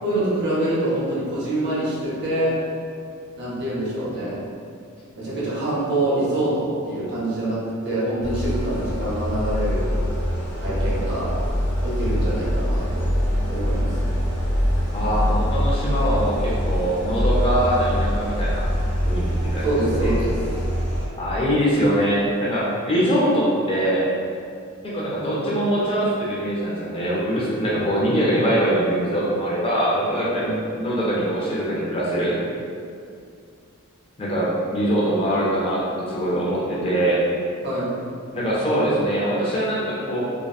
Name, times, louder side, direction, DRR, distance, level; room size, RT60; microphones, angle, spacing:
voice 1, 0.0-2.6 3.4-4.4 5.1-10.0 10.6-11.4 11.8-13.1 13.5-14.2 19.6-20.4 30.3-30.6 37.6-37.9, right 1 dB, 50° right, -7 dB, 0.7 m, -25 dB
sound 1, 8.2-21.1, equal, 75° left, 0.7 m, -24 dB
voice 2, 14.9-18.6 19.1-20.1 21.2-24.0 24.8-30.5 30.7-32.3 34.2-37.2 38.3-40.2, equal, 25° left, -7 dB, 0.4 m, -23 dB
2.7 x 2.1 x 2.3 m, 2.3 s
head